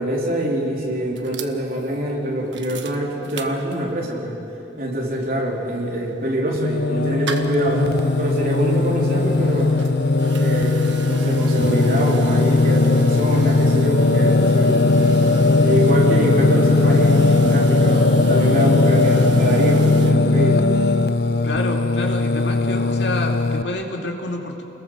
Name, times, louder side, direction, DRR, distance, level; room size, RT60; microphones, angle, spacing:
voice 1, 0.0-4.3 4.8-9.7 10.2-14.8 15.6-20.6, right 1 dB, 50° right, -2 dB, 4.2 m, -24 dB
sound 1, 1.2-4.1 4.5-4.6 4.8-20.1, right 5 dB, 85° right, 1.4 m, -35 dB
Singing, 6.5-23.6, left 3 dB, 55° left, 0.7 m, -18 dB
voice 2, 21.4-24.6, left 2 dB, 75° left, 1 dB, 2.7 m, -28 dB
29.5 x 21.5 x 6.5 m, 2.8 s
head